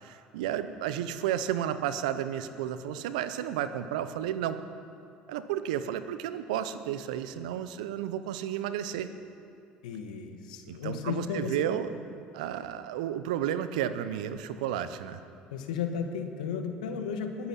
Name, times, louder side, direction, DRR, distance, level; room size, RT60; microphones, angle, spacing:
voice 1, 0.0-4.6 5.3-9.1 10.7-11.9 12.3-15.2, right 10 dB, 80° right, 12 dB, 0.7 m, -32 dB
voice 2, 9.8-11.7 15.5-17.5, left 6 dB, 85° left, 6 dB, 1.3 m, -34 dB
21.0 x 8.7 x 5.8 m, 2.6 s
hypercardioid pair, 65°, 4 cm